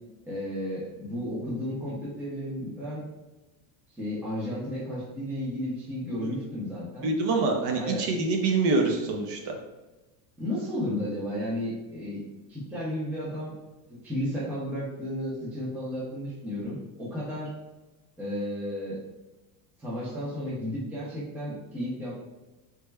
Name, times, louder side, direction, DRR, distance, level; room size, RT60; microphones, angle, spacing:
voice 1, 0.3-3.0 4.0-7.1 7.7-8.1 10.4-12.2 12.5-13.5 13.9-17.5 18.2-19.0 19.8-22.1, equal, 5° right, -7 dB, 0.4 m, -33 dB
voice 2, 7.0-9.5, right 3 dB, 55° right, 2 dB, 0.6 m, -25 dB
3.4 x 2.1 x 3.2 m, 1.1 s
cardioid pair, 155°, 49 cm